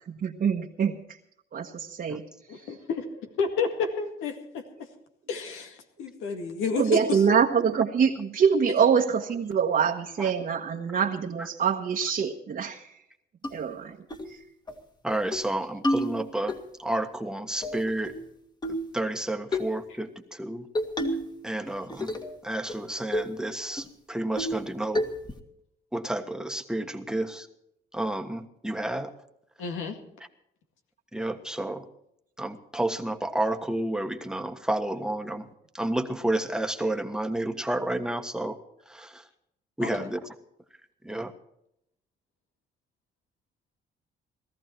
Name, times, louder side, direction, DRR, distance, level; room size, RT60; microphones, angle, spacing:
voice 1, 0.1-1.0 1.5-2.2 6.7-12.8 13.5-14.0 14.3-14.4, right 7 dB, 50° right, 0 dB, 1.3 m, -25 dB
voice 2, 2.5-4.9 5.3-7.2 29.6-30.0 39.8-40.1, left 5 dB, 90° left, 5 dB, 2.1 m, -31 dB
sound 1, 13.4-13.5 14.1-14.3 14.7-14.8 15.1-15.5 15.8-16.6 17.6-18.3 18.6-18.9 19.5-19.7 20.8-21.3 21.7-22.3 22.7-22.8 23.1-23.4 23.8-23.9 24.4-24.7 25.0-25.4, equal, 20° left, 1.9 m, -29 dB
voice 3, 15.0-16.5 16.8-18.1 18.9-20.7 21.4-22.2 22.4-25.0 25.9-27.5 27.9-29.1 31.1-31.8 32.4-35.4 35.7-38.6 38.9-39.2 39.8-40.2 41.0-41.3, right 1 dB, 5° right, 6 dB, 1.4 m, -30 dB
18.0 x 14.0 x 4.5 m, 0.76 s
cardioid pair, 90°, 20 cm